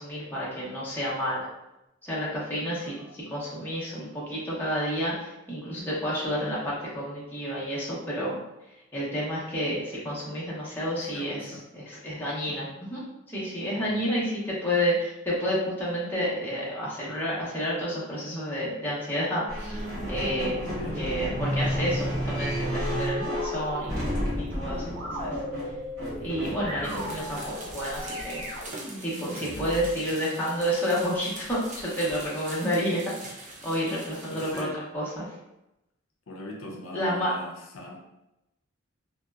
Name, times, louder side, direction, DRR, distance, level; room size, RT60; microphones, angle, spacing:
voice 1, 0.0-1.5 2.0-3.0 3.3-8.4 8.9-20.6 21.0-23.9 24.5-25.4 26.2-28.4 29.0-34.7 34.9-35.3 36.9-37.3, equal, 10° left, -8 dB, 0.7 m, -30 dB
voice 2, 2.8-3.2 11.1-11.7 12.4-12.7 13.8-14.2 20.7-21.0 26.8-27.2 29.2-29.8 34.3-34.8 36.3-38.0, left 1 dB, 85° left, 0 dB, 0.5 m, -41 dB
sound 1, 19.5-28.6, equal, 90° right, 0.9 m, -33 dB
sound 2, 21.3-29.9, equal, 70° right, 1.0 m, -35 dB
sound 3, 26.8-34.6, right 2 dB, 40° right, 0.5 m, -43 dB
2.7 x 2.1 x 2.3 m, 0.91 s
head